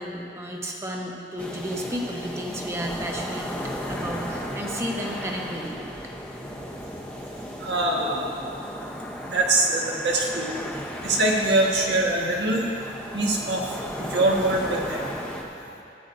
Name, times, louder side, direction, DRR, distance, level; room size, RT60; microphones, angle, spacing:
voice 1, 0.0-3.5 3.9-5.8, equal, 15° right, -1 dB, 0.9 m, -32 dB
sound 1, 1.4-15.4, equal, 10° left, 0.8 m, -35 dB
voice 2, 7.6-8.6 9.2-12.7 13.1-15.8, right 2 dB, 85° right, -2 dB, 1.5 m, -24 dB
16.5 x 9.2 x 2.6 m, 2.6 s
head